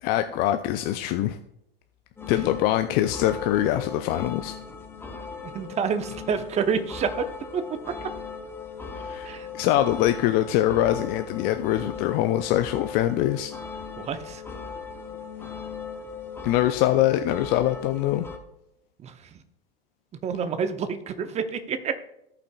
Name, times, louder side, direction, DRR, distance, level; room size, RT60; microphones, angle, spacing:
voice 1, 0.0-1.4 2.3-4.6 9.0-13.5 16.4-18.2, left 13 dB, 30° left, 8 dB, 0.4 m, -23 dB
sound 1, 2.2-18.4, left 5 dB, 10° left, 0.9 m, -38 dB
voice 2, 5.4-7.3 7.5-7.6 9.2-9.5 14.0-14.4 19.0-19.1 20.2-21.9, right 6 dB, 20° right, 9 dB, 0.8 m, -28 dB
17.0 x 5.8 x 2.3 m, 0.80 s
hypercardioid pair, 100°, 30 cm